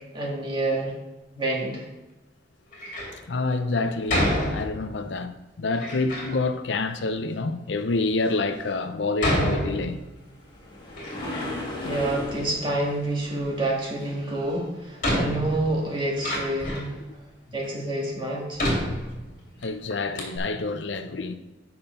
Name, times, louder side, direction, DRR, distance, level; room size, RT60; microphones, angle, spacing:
voice 1, 0.1-0.9 1.3-1.9 11.8-17.0 17.5-18.6, right 1 dB, 25° right, 2.2 m, -28 dB
Door, 2.7-3.2 4.1-5.1 5.7-6.4 7.1-7.2 7.9-8.0 9.2-10.3 10.7-11.7 12.0-12.9 14.2-14.3 15.0-17.0 17.6-17.7 18.6-19.6 19.9-20.0 20.2-20.4, equal, 45° left, 2.6 m, -28 dB
voice 2, 3.1-10.0 18.8-19.0 19.6-21.4, left 3 dB, 75° left, 0.6 m, -28 dB
Train Passing By Medium Fast Speed L to R Night Amb, 9.7-15.0 18.9-19.0 19.6-19.7, left 1 dB, 25° left, 1.9 m, -37 dB
8.7 x 5.9 x 5.3 m
head